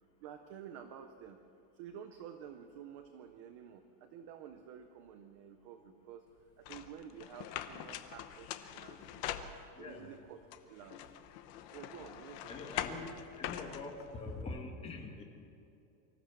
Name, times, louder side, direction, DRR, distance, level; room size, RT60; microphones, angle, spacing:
voice 1, 0.2-1.4 1.8-6.3 6.6-9.3 9.8-10.4 10.7-11.0 11.7-12.7, right 8 dB, 25° right, 7 dB, 0.4 m, -51 dB
sound 1, 6.7-10.0 10.5-14.4, left 10 dB, 30° left, 0.9 m, -43 dB
voice 2, 9.7-10.1 12.5-15.2, left 3 dB, 15° left, 2 dB, 1.7 m, -44 dB
24.5 x 14.5 x 7.5 m, 2.7 s
supercardioid pair, 180°, 46 cm